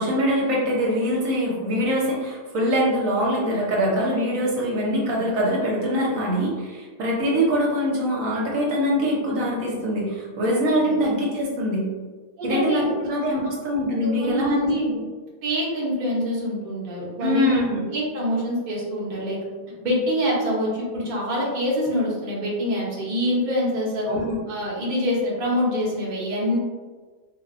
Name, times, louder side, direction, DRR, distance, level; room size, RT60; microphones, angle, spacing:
voice 1, 0.0-11.9 12.4-15.0 17.2-17.8 24.1-24.4, equal, 75° right, -3 dB, 1.1 m, -23 dB
voice 2, 12.4-13.1 14.0-14.9 15.4-19.4 19.8-24.0 24.5-26.6, equal, 40° right, -5 dB, 0.8 m, -25 dB
3.8 x 2.1 x 2.4 m, 1.4 s
omnidirectional pair, 1.4 m